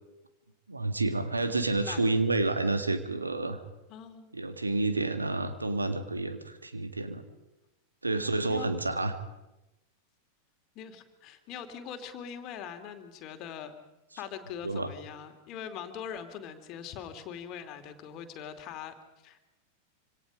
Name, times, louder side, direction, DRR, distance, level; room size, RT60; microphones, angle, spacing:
voice 1, 0.7-3.6 4.3-7.2 8.0-9.2 14.6-14.9, right 2 dB, 80° right, 9 dB, 1.9 m, -29 dB
voice 2, 3.9-4.3 8.2-8.7 10.7-13.7 14.2-19.5, left 8 dB, 40° left, 8 dB, 2.7 m, -42 dB
26.5 x 25.5 x 5.2 m, 0.97 s
figure-of-eight pair, 90°, 0 cm